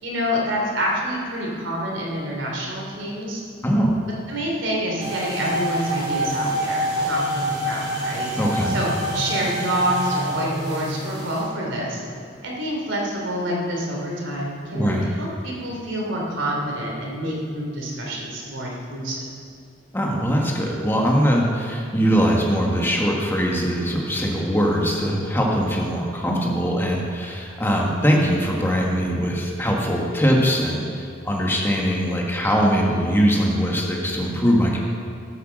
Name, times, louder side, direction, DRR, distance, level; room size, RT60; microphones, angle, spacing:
voice 1, 0.0-3.4 4.3-8.3 8.7-8.9 9.1-12.0 12.4-19.2, equal, 70° right, -2 dB, 2.9 m, -27 dB
voice 2, 3.6-3.9 8.4-8.8 14.7-15.1 19.9-34.8, equal, 10° left, -1 dB, 1.5 m, -21 dB
sound 1, 5.0-11.4, right 1 dB, 20° right, 3.4 m, -27 dB
12.5 x 8.1 x 6.4 m, 2.4 s
head